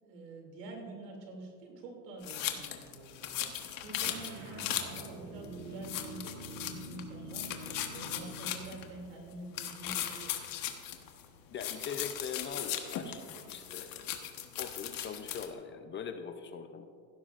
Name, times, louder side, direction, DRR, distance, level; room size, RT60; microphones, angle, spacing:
voice 1, 0.0-3.6 3.8-7.5 7.9-10.4, right 2 dB, 80° right, 1 dB, 2.8 m, -47 dB
sound 1, 2.2-5.1 5.4-5.5 5.8-7.0 7.3-8.9 9.5-11.3 11.6-15.5, left 11 dB, 45° left, 1.2 m, -38 dB
sound 2, 4.0-8.7, right 1 dB, 55° right, 2.4 m, -46 dB
voice 2, 11.5-14.2 14.6-16.8, left 6 dB, 25° left, 8 dB, 0.5 m, -42 dB
15.5 x 12.0 x 2.5 m, 2.3 s
supercardioid pair, 105°, 48 cm